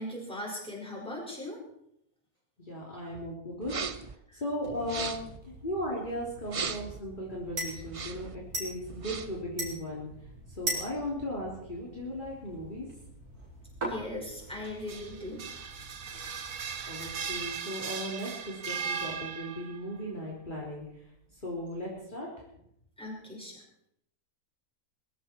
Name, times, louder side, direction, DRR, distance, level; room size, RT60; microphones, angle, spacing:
voice 1, 0.0-1.6 4.3-4.4 13.8-15.4 23.0-23.6, left 1 dB, 5° left, -3 dB, 5.6 m, -39 dB
voice 2, 2.7-3.7 4.3-5.2 5.6-10.1 10.6-12.9 16.9-20.8 21.4-22.3, equal, 30° left, -5 dB, 3.5 m, -36 dB
sound 1, 3.6-4.1 4.8-5.4 6.4-7.0 7.8-8.3 8.9-9.4, right 5 dB, 45° right, 0.4 m, -37 dB
sound 2, 4.6-17.4, right 1 dB, 85° right, 4.8 m, -42 dB
sound 3, 14.6-19.8, right 6 dB, 65° right, 1.6 m, -37 dB
22.0 x 14.5 x 4.5 m, 0.75 s
omnidirectional pair, 1.6 m